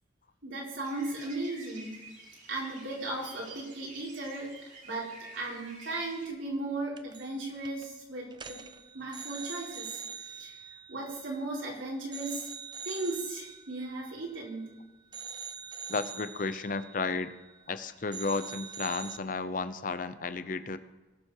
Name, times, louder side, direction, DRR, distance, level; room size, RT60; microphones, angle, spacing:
voice 1, 0.4-2.0 2.5-4.5 4.8-8.6 8.9-10.6 10.9-12.5 12.8-14.7, right 2 dB, 85° right, -4 dB, 4.2 m, -36 dB
sound 1, 0.8-6.3, right 2 dB, 40° right, 2.8 m, -50 dB
sound 2, 7.0-7.4 7.6-7.9 8.3-11.7 12.1-14.7 15.1-17.8 18.1-19.2, right 6 dB, 25° right, 0.5 m, -44 dB
voice 2, 15.9-17.3 17.7-20.8, left 3 dB, 45° left, 12 dB, 0.7 m, -33 dB
20.0 x 7.3 x 4.8 m, 1.2 s
head